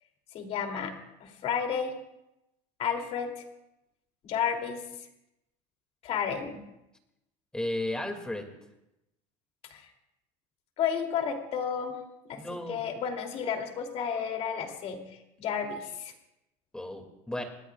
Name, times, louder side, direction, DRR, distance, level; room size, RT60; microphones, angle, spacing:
voice 1, 0.3-0.9 1.2-1.9 2.8-3.3 4.2-4.8 6.0-6.6 9.7-9.9 10.8-12.0 12.3-16.1, left 7 dB, 45° left, 3 dB, 3.0 m, -32 dB
voice 2, 7.5-8.5 12.4-12.8 16.7-17.4, left 1 dB, 5° left, 4 dB, 2.4 m, -34 dB
26.5 x 20.0 x 2.4 m, 0.88 s
cardioid pair, 145°, 15 cm